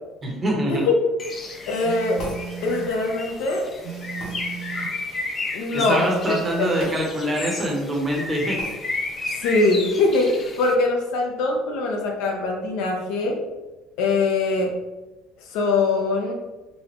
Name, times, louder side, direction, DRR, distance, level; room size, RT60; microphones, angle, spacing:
voice 1, 0.2-0.8 5.7-8.6, equal, 15° right, -1 dB, 0.8 m, -24 dB
Bird, 1.2-10.8, left 3 dB, 20° left, 0.4 m, -33 dB
voice 2, 1.7-2.2 2.6-3.6 5.5-6.8 9.3-13.4 14.0-14.7 15.5-16.3, left 3 dB, 70° left, 1 dB, 0.8 m, -22 dB
Telephone, 1.8-3.0 3.8-5.0 5.8-7.0, right 8 dB, 70° right, 0.4 m, -36 dB
sound 1, 2.2-2.5 4.2-4.4 6.8-7.0 7.4-7.5 8.6-8.8, equal, 50° left, 1.2 m, -36 dB
4.2 x 3.6 x 3.0 m, 1.1 s
cardioid pair, 175°, 0 cm